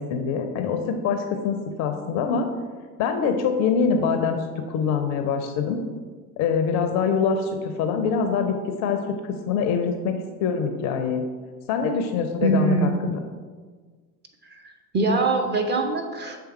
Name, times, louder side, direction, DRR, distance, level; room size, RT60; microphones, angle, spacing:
voice 1, 0.0-2.5 3.0-5.8 6.4-8.6 8.8-9.0 9.5-10.1 10.4-11.2 11.7-13.2, left 6 dB, 40° left, 6 dB, 0.5 m, -24 dB
voice 2, 12.4-13.0 14.5-16.4, right 2 dB, 20° right, 2 dB, 0.8 m, -23 dB
6.8 x 3.5 x 4.3 m, 1.5 s
figure-of-eight pair, 70°, 45 cm